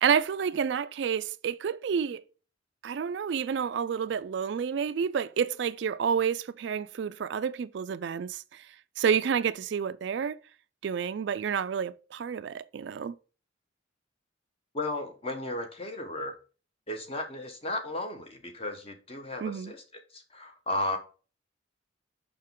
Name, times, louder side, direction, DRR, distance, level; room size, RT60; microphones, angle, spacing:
voice 1, 0.0-2.2 2.8-8.7 9.0-10.4 10.8-13.1 19.4-19.7, right 7 dB, 60° right, 0.3 m, -29 dB
voice 2, 14.7-16.4 16.9-21.0, left 1 dB, 30° left, 1.1 m, -34 dB
6.5 x 5.8 x 3.7 m
head